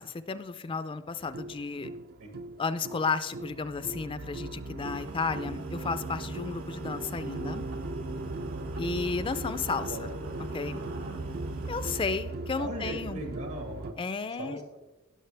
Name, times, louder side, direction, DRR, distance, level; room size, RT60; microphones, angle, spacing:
voice 1, 0.0-1.9 2.6-7.7 8.8-10.1 10.5-10.8 11.7-13.2 14.0-14.6, left 4 dB, 25° left, 12 dB, 0.4 m, -33 dB
sound 1, 1.2-13.9, right 2 dB, 45° right, 0.5 m, -38 dB
sound 2, 4.8-12.0, right 1 dB, 85° right, 1.6 m, -43 dB
voice 2, 12.6-14.0 14.4-14.8, right 1 dB, 70° right, 4 dB, 1.6 m, -38 dB
17.5 x 6.3 x 3.3 m, 1.1 s
head